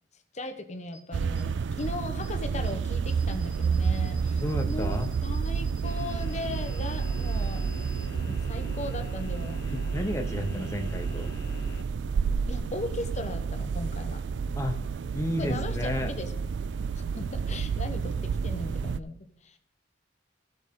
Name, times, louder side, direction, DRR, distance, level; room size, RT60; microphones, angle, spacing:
voice 1, 0.3-7.7 8.1-9.6 12.5-14.2 15.4-16.3 16.9-19.6, left 2 dB, 40° left, 8 dB, 1.0 m, -38 dB
sound 1, 0.9-1.0 1.4-1.5 1.8-1.9 2.2-2.3 2.6-2.7 3.1-8.1, left 1 dB, 65° left, 2.1 m, -51 dB
sound 2, 1.1-19.0, right 5 dB, 70° right, 0.3 m, -30 dB
voice 2, 4.4-5.1 9.7-11.3 14.6-14.8 15.1-16.1, left 1 dB, 15° left, 4 dB, 1.0 m, -31 dB
sound 3, 5.8-11.8, left 2 dB, 85° left, 0.9 m, -45 dB
15.5 x 8.0 x 3.8 m, 0.67 s
head